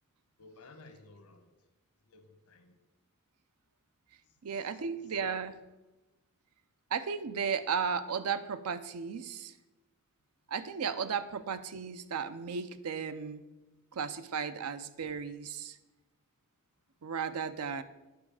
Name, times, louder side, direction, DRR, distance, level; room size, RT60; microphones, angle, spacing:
voice 1, 0.4-1.5 2.1-2.8 4.5-4.7, left 3 dB, 85° left, 1.0 m, -55 dB
voice 2, 4.4-5.6 6.9-9.5 10.5-13.4 13.9-15.8 17.0-17.8, right 6 dB, 90° right, 0.5 m, -35 dB
8.6 x 5.9 x 4.8 m
head